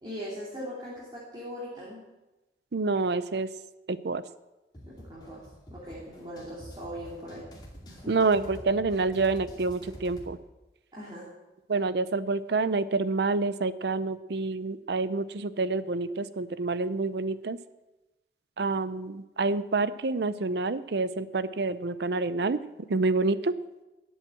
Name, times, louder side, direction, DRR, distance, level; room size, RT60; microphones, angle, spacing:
voice 1, 0.0-2.0 4.8-5.4 5.7-7.4 7.8-8.1 10.9-11.3, equal, 25° right, -7 dB, 2.9 m, -40 dB
voice 2, 2.7-3.5 3.9-4.2 8.1-10.4 11.7-17.6 18.6-22.6 22.9-23.5, right 3 dB, 65° right, 15 dB, 0.6 m, -27 dB
sound 1, 4.7-10.4, equal, 25° left, 2.5 m, -47 dB
12.5 x 7.9 x 7.6 m, 1.1 s
head